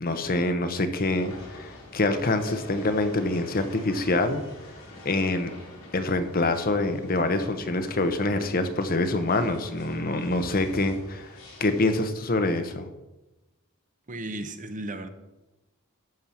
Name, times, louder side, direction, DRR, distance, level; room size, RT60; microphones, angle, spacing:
voice 1, 0.0-4.4 5.0-5.5 5.9-11.3 11.6-12.9, left 2 dB, 40° left, 9 dB, 0.9 m, -25 dB
sound 1, 1.2-12.0, left 1 dB, 75° left, 3.8 m, -46 dB
voice 2, 14.1-15.1, right 1 dB, 35° right, 8 dB, 0.9 m, -35 dB
12.5 x 4.6 x 7.1 m, 1.0 s
head